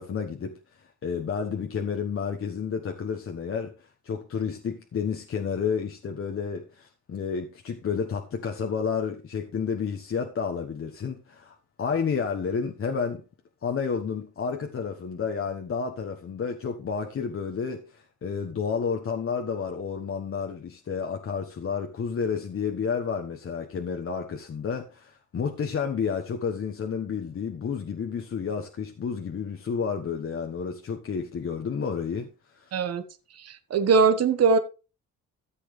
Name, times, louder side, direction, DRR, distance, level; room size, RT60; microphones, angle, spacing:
voice 1, 0.0-13.2 13.6-32.7, left 6 dB, 45° left, 1.3 m, -31 dB
voice 2, 32.7-33.0 33.4-34.6, right 5 dB, 55° right, 1.3 m, -21 dB
14.0 x 7.7 x 3.3 m
cardioid pair, 90°, 30 cm